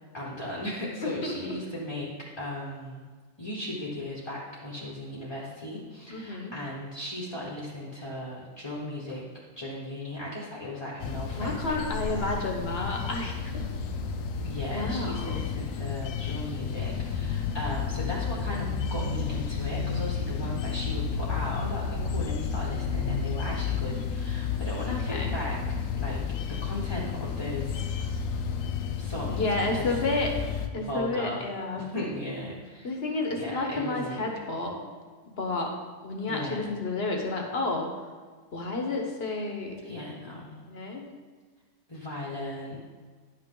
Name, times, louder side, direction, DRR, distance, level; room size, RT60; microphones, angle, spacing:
voice 1, 0.1-2.1 2.4-3.0 3.4-9.2 9.6-12.2 14.4-25.6 25.9-26.2 26.5-27.9 29.0-29.9 30.7-31.5 31.7-32.9 33.3-34.2 36.3-36.7 39.8-40.6 41.9-42.8, left 1 dB, 20° left, -5 dB, 1.3 m, -36 dB
voice 2, 1.0-1.5 6.1-6.5 11.4-13.7 14.7-15.4 25.1-25.3 29.3-30.3 30.7-31.8 32.8-34.7 35.4-35.7 36.0-37.9 38.5-39.7 40.7-41.1, left 2 dB, 50° left, 1 dB, 1.4 m, -31 dB
sound 1, 11.0-30.7, left 6 dB, 75° left, 1.0 m, -31 dB
10.5 x 6.0 x 3.8 m, 1.5 s
omnidirectional pair, 1.4 m